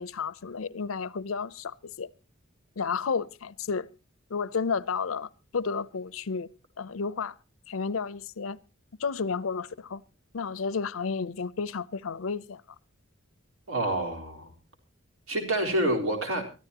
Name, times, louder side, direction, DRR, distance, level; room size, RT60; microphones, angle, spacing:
voice 1, 0.0-2.1 2.8-3.9 4.3-6.5 6.8-7.4 7.7-8.6 9.0-10.0 10.3-12.6, left 5 dB, 80° left, 0.6 m, -32 dB
voice 2, 13.7-14.5 15.3-16.5, right 1 dB, 70° right, 4.0 m, -28 dB
24.5 x 13.5 x 2.9 m
head